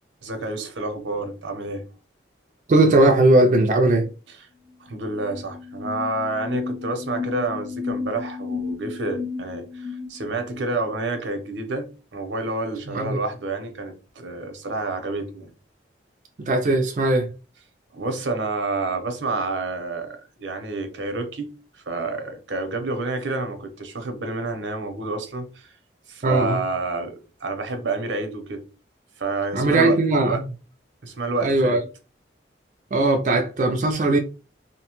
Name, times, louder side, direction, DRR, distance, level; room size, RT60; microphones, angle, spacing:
voice 1, 0.2-1.8 4.8-15.5 17.9-25.7 26.1-28.6 29.2-30.4 31.0-31.8, right 2 dB, 85° right, 0.7 m, -29 dB
voice 2, 2.7-4.1 12.9-13.2 16.4-17.3 26.2-26.6 29.5-30.4 31.4-31.8 32.9-34.2, right 2 dB, 45° right, 0.3 m, -19 dB
sound 1, 4.7-4.8 5.0-10.7, left 5 dB, 45° left, 0.8 m, -33 dB
2.7 x 2.1 x 2.9 m
head